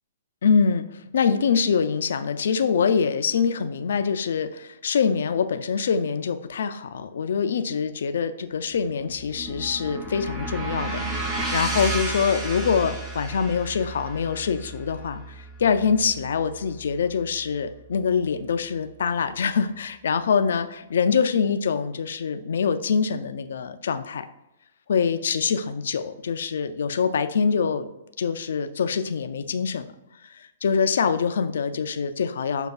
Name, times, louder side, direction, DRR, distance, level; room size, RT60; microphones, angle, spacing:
voice 1, 0.4-24.3 24.9-27.9 28.2-29.9 30.2-32.7, left 6 dB, 65° left, 9 dB, 0.3 m, -24 dB
sound 1, 8.7-17.0, right 2 dB, 15° right, 0.7 m, -32 dB
6.2 x 2.3 x 2.3 m, 0.91 s
hypercardioid pair, 120°, 0 cm